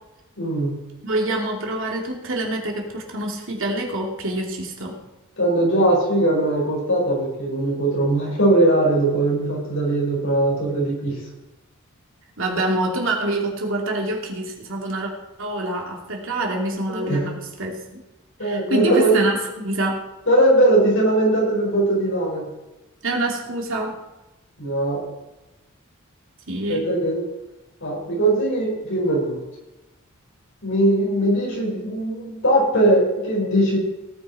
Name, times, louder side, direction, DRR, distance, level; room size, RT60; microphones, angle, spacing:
voice 1, 0.4-0.7 5.4-11.2 16.9-17.3 18.4-19.2 20.3-22.5 24.6-25.0 26.7-27.2 27.8-29.4 30.6-33.8, right 1 dB, 65° left, -2 dB, 5.6 m, -20 dB
voice 2, 1.0-4.9 12.4-15.1 15.4-17.7 18.4-20.0 23.0-24.0 26.5-26.9, right 1 dB, 65° right, 0 dB, 2.9 m, -26 dB
17.5 x 9.7 x 4.4 m, 1.0 s
head